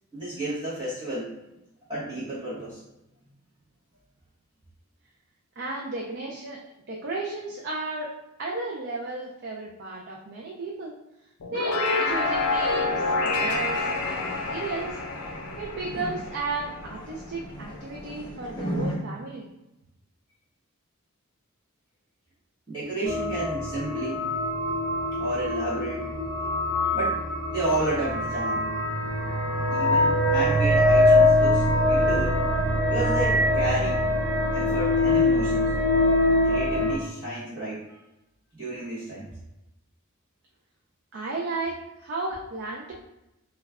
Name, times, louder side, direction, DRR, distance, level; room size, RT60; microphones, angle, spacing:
voice 1, 0.1-1.3 1.9-2.8 22.7-24.3 25.2-26.1 26.9-27.2 27.5-28.6 29.7-32.4 32.9-34.0 34.5-35.7 36.4-38.0 38.5-39.3, right 1 dB, 20° right, -11 dB, 1.0 m, -31 dB
voice 2, 5.6-6.6 6.9-8.1 8.4-10.9 11.5-15.0 15.6-19.5 41.1-42.9, right 2 dB, 50° right, -2 dB, 0.4 m, -33 dB
sound 1, 11.4-16.9, left 3 dB, 80° left, 0.5 m, -28 dB
sound 2, 12.1-19.0, equal, 20° left, 0.6 m, -38 dB
sound 3, 23.1-36.9, left 1 dB, 80° right, 0.8 m, -23 dB
3.0 x 2.3 x 3.5 m, 0.92 s
head